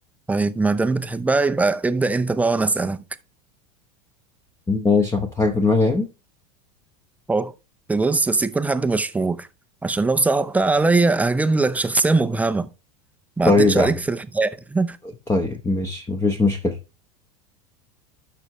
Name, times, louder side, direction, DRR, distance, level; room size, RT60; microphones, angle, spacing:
voice 1, 0.3-3.0 7.3-7.5 7.9-9.5 9.8-12.7 13.4-15.0, right 3 dB, 5° right, 0.6 m, -21 dB
voice 2, 4.7-6.1 13.5-13.9 15.3-16.8, left 3 dB, 15° left, 0.9 m, -20 dB
12.0 x 5.6 x 3.1 m
supercardioid pair, 120°, 21 cm